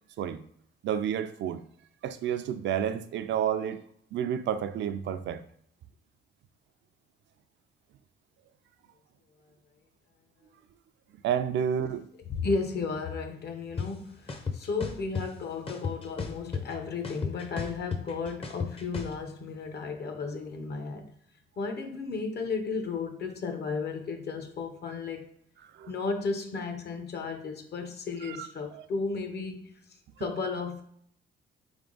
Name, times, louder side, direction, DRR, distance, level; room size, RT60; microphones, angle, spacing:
voice 1, 0.8-1.6 2.0-3.8 4.1-5.4 11.2-12.1 25.8-25.9 28.3-28.5 28.7-28.8, right 9 dB, 65° right, 0.4 m, -30 dB
voice 2, 12.3-21.1 21.6-25.3 25.9-29.7 30.2-30.8, left 4 dB, 55° left, 0.8 m, -34 dB
sound 1, 13.8-13.9 14.3-15.3 15.7-16.7 17.0-19.1, left 5 dB, 30° left, 0.6 m, -33 dB
3.6 x 3.3 x 3.8 m
cardioid pair, 90°, 20 cm